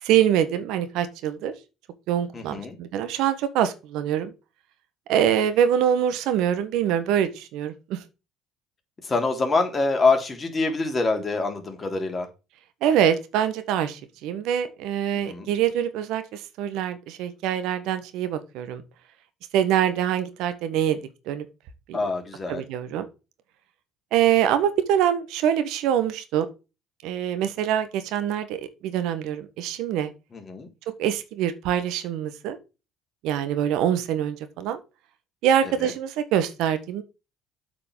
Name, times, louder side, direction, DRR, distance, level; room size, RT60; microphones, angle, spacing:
voice 1, 0.0-1.5 2.1-4.3 5.1-8.0 12.8-18.8 19.5-21.0 21.3-21.4 21.9-22.1 22.5-23.1 24.1-26.5 27.0-30.1 31.0-32.6 33.2-34.8 35.4-37.0, right 10 dB, 75° right, 1.5 m, -24 dB
voice 2, 2.3-2.8 9.0-12.3 15.3-15.5 21.9-22.6 30.3-30.7 35.8-35.9, left 3 dB, 30° left, 3.4 m, -25 dB
8.3 x 5.0 x 7.5 m
supercardioid pair, 75°, 0 cm